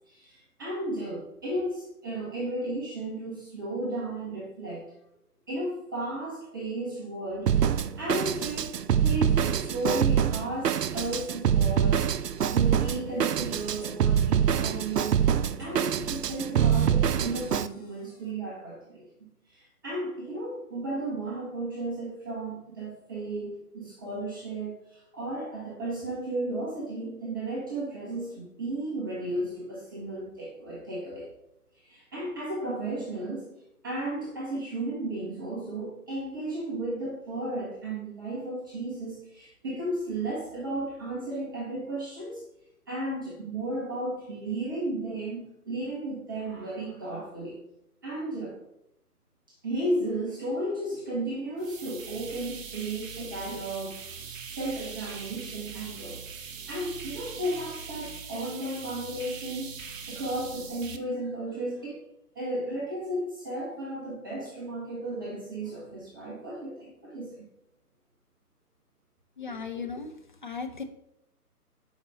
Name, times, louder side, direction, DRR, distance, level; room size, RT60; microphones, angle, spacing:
voice 1, 0.1-4.9 5.5-7.5 8.0-8.7 9.0-12.1 12.5-15.2 15.6-19.1 19.5-31.3 31.7-33.5 33.8-42.4 42.9-47.6 48.0-48.6 49.6-56.2 56.7-62.0 62.3-67.4, right 1 dB, 15° right, -5 dB, 0.7 m, -34 dB
Drum kit, 7.5-17.7, right 8 dB, 80° right, 0.6 m, -25 dB
sound 1, 10.9-11.0 11.7-12.1 12.4-12.5 13.4-13.5 13.8-13.9 14.7-14.8 15.3-15.7 16.0-16.1 16.9-17.1 17.3-18.3, right 1 dB, 80° left, 3.2 m, -45 dB
sound 2, 51.6-61.0, right 6 dB, 55° right, 0.8 m, -41 dB
voice 2, 69.4-70.1 70.4-70.8, left 5 dB, 30° left, 6 dB, 0.5 m, -36 dB
8.1 x 5.2 x 4.0 m, 0.82 s
figure-of-eight pair, 145°, 47 cm